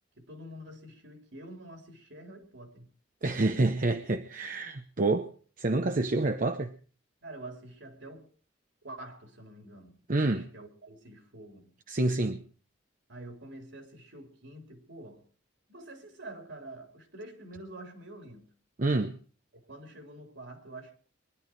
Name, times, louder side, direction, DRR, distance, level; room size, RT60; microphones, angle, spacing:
voice 1, 0.1-2.9 7.2-8.3 8.8-10.0 10.2-11.7 13.1-15.3 15.7-18.4 19.5-21.0, right 1 dB, 70° right, 3.5 m, -47 dB
voice 2, 3.2-5.3 5.6-6.7 10.1-10.5 11.9-12.4 18.8-19.1, right 2 dB, 45° right, 0.8 m, -27 dB
23.0 x 11.0 x 4.5 m
head